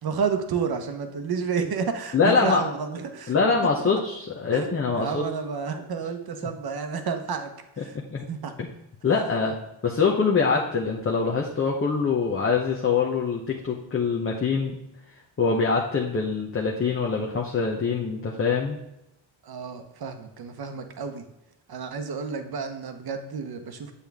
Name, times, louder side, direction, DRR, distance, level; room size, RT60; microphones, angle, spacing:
voice 1, 0.0-3.3 3.8-3.9 4.5-7.5 7.8-7.9 8.3-8.5 19.4-21.3 21.7-23.9, right 5 dB, 50° right, 6 dB, 1.0 m, -30 dB
voice 2, 2.1-2.6 3.3-5.3 7.9-8.3 8.6-8.7 9.0-9.6 9.8-14.7 15.4-18.8, left 5 dB, 25° left, -1 dB, 0.8 m, -24 dB
8.3 x 7.5 x 3.5 m, 0.88 s
wide cardioid pair, 135°, 48 cm